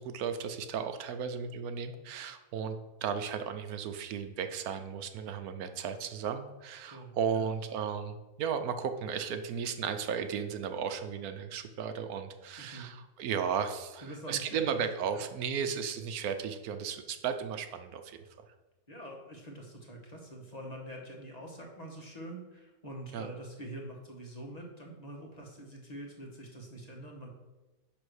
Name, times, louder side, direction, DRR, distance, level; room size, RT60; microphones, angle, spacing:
voice 1, 0.0-18.2 23.1-23.3, right 7 dB, 75° right, 8 dB, 1.1 m, -35 dB
voice 2, 6.8-7.4 12.6-12.9 14.0-14.6 18.9-27.3, right 1 dB, 25° left, -1 dB, 1.5 m, -45 dB
10.0 x 3.5 x 6.3 m, 1.1 s
omnidirectional pair, 1.6 m